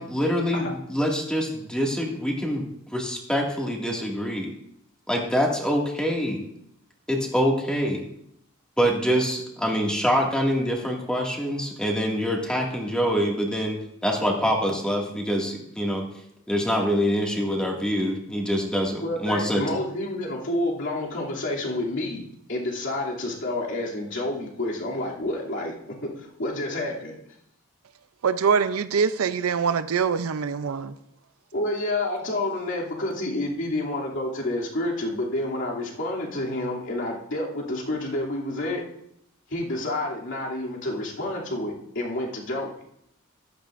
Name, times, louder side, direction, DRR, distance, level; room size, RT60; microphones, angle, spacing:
voice 1, 0.0-4.5 5.1-6.4 7.1-8.0 8.8-16.1 16.5-19.6, equal, 5° left, 2.0 m, -25 dB
voice 2, 19.0-25.7 26.0-27.2 31.5-38.8 39.5-42.7, left 1 dB, 60° left, 2.7 m, -29 dB
voice 3, 28.2-30.9, right 6 dB, 85° right, 0.5 m, -24 dB
14.5 x 12.0 x 2.5 m
head